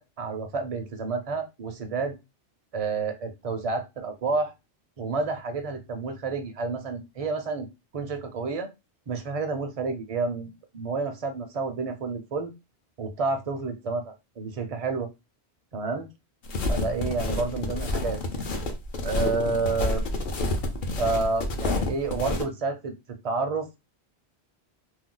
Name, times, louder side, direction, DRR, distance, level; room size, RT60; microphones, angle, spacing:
voice 1, 0.0-2.2 2.7-4.5 5.0-7.7 7.9-8.7 9.1-12.5 13.0-15.1 15.7-16.1 16.7-18.2 19.0-20.0 21.0-22.9 23.2-23.7, right 4 dB, 45° right, 6 dB, 0.5 m, -29 dB
sound 1, 16.4-22.4, left 2 dB, 55° left, 0.7 m, -29 dB
2.6 x 2.2 x 3.7 m, 0.24 s
omnidirectional pair, 1.1 m